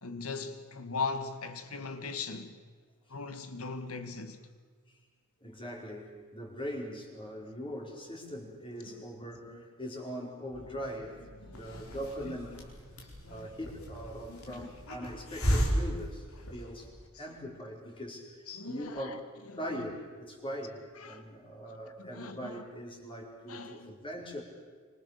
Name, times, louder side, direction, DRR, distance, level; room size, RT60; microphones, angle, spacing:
voice 1, 0.0-2.6 3.1-4.4 8.8-9.0 9.5-9.6 11.3-12.4 13.2-13.6 14.3-14.8 16.3-16.5 17.1-17.3 18.5-19.2 19.5-19.8 20.9-21.3 22.0-22.6 23.5-23.9, left 4 dB, 85° left, 2.3 m, -40 dB
voice 2, 5.4-11.2 11.5-12.7 13.3-16.9 17.2-18.3 18.7-19.2 19.6-24.4, equal, 25° left, 5.2 m, -41 dB
sound 1, 10.5-17.6, equal, 90° right, 2.1 m, -55 dB
Hiss, 11.5-17.0, equal, 70° left, 4.6 m, -34 dB
25.5 x 25.5 x 6.9 m
head